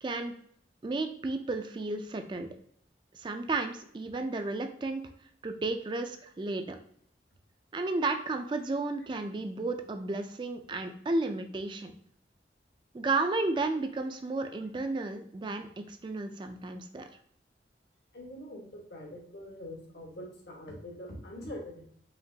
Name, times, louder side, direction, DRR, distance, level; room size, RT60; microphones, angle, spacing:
voice 1, 0.0-0.3 0.8-2.5 3.1-5.0 5.4-6.8 7.7-11.9 12.9-17.1, right 3 dB, 25° right, 6 dB, 0.3 m, -33 dB
voice 2, 18.1-21.9, left 1 dB, 75° left, 0 dB, 1.3 m, -44 dB
5.0 x 3.0 x 2.7 m, 0.64 s
head